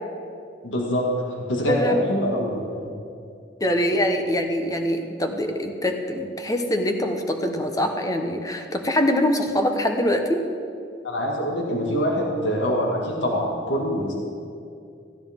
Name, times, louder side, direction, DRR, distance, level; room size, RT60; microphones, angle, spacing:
voice 1, 0.6-2.9 11.0-14.1, equal, 85° left, -2 dB, 2.0 m, -25 dB
voice 2, 1.7-2.1 3.6-10.4, left 1 dB, 20° left, 5 dB, 0.9 m, -23 dB
14.5 x 12.5 x 3.7 m, 2.4 s
head